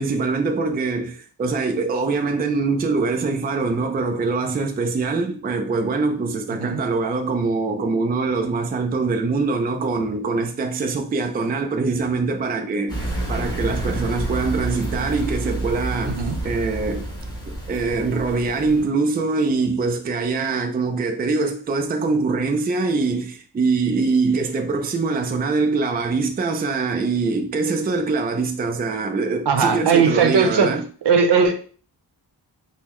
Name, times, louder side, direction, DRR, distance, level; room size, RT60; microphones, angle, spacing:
voice 1, 0.0-13.0 13.3-16.2 16.4-17.1 17.5-30.8, right 4 dB, 25° right, 0.4 m, -23 dB
voice 2, 6.5-6.8 16.1-16.4 29.5-30.8 31.0-31.5, right 5 dB, 75° right, 0.7 m, -18 dB
sound 1, 12.9-18.8, right 2 dB, 10° left, 1.1 m, -29 dB
5.4 x 2.1 x 3.0 m
wide cardioid pair, 155°, 42 cm